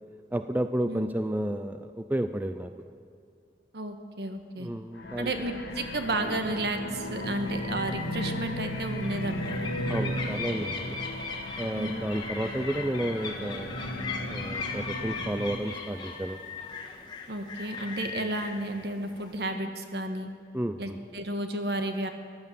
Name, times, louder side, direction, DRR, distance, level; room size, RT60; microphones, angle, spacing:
voice 1, 0.3-2.9 4.6-5.3 9.9-11.0 11.6-13.8 14.3-16.4 20.5-21.0, right 1 dB, 10° right, 9 dB, 0.4 m, -31 dB
voice 2, 3.7-4.7 5.2-9.7 11.7-12.0 17.3-20.3 20.8-22.1, right 1 dB, 65° right, 6 dB, 1.3 m, -32 dB
sound 1, 4.9-15.7, equal, 85° left, 1.5 m, -36 dB
sound 2, 7.0-19.5, left 4 dB, 25° left, 1.4 m, -39 dB
15.0 x 11.0 x 7.5 m, 2.3 s
head